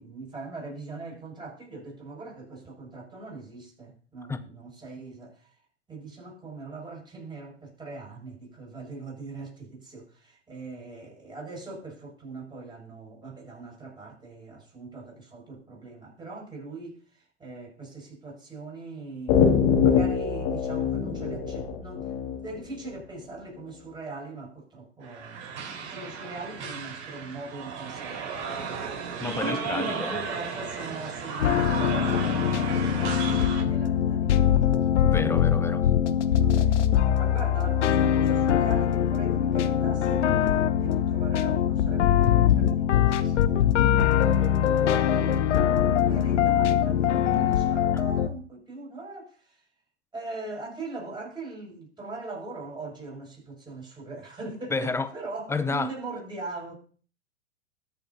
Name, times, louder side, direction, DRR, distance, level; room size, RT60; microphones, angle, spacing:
voice 1, 0.0-5.5 5.9-16.9 17.4-19.5 19.7-25.5 25.9-28.6 29.4-35.0 35.8-36.7 37.2-44.3 44.6-45.4 45.7-49.6 50.1-56.7, right 3 dB, 10° right, 6.6 m, -41 dB
sound 1, 19.3-22.9, left 7 dB, 50° left, 2.6 m, -24 dB
sound 2, 25.0-33.6, right 6 dB, 45° right, 4.7 m, -34 dB
voice 2, 29.2-30.2 35.0-35.8 54.7-55.1 55.5-55.9, left 3 dB, 5° left, 0.7 m, -30 dB
sound 3, 31.4-48.3, left 9 dB, 75° left, 1.0 m, -22 dB
21.0 x 7.2 x 2.8 m
hypercardioid pair, 110°, 36 cm